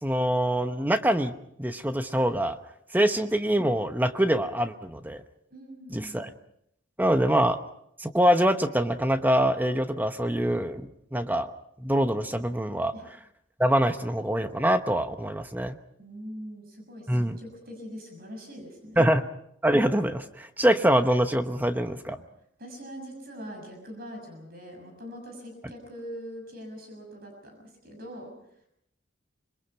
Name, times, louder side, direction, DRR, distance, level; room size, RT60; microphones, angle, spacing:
voice 1, 0.0-2.6 2.9-5.2 5.9-6.3 7.0-7.6 8.0-10.8 11.1-11.5 11.8-12.9 13.6-15.8 17.1-17.4 19.0-19.2 19.6-22.2, right 1 dB, 10° right, 8 dB, 1.0 m, -24 dB
voice 2, 5.5-6.3 12.9-13.0 16.0-19.2 22.6-27.6 27.8-28.3, equal, 55° right, 3 dB, 6.7 m, -42 dB
26.5 x 22.5 x 5.7 m, 0.75 s
head